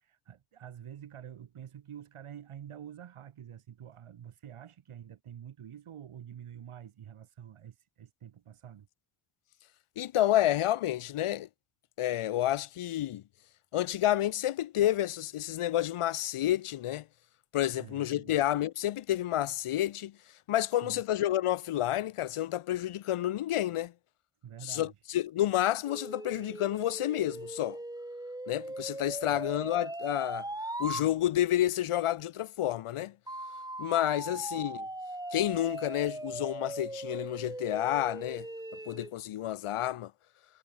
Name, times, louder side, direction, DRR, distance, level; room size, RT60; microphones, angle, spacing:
voice 1, 0.0-8.9 17.7-18.4 20.8-21.0 24.4-24.9 29.2-29.4, right 9 dB, 85° right, 7.5 m, -47 dB
voice 2, 10.0-11.5 12.0-13.2 13.7-17.1 17.5-20.1 20.5-23.9 24.6-27.8 28.5-30.5 30.8-33.1 33.8-34.9 35.3-38.5 38.9-40.1, left 13 dB, 90° left, 1.1 m, -30 dB
sound 1, 25.9-31.1 33.3-39.1, right 1 dB, 10° right, 1.5 m, -39 dB
wide cardioid pair, 125°, 49 cm